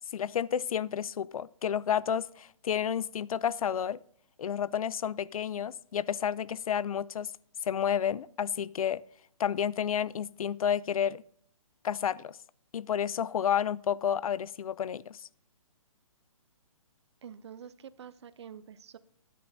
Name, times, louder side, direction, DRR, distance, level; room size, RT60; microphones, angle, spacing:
voice 1, 0.1-4.0 4.4-7.3 7.7-9.0 9.4-11.2 11.8-12.4 12.7-15.3, left 8 dB, 80° left, 0.4 m, -30 dB
voice 2, 17.2-19.0, right 8 dB, 50° right, 0.6 m, -47 dB
12.0 x 10.0 x 2.7 m
hypercardioid pair, 160°, 18 cm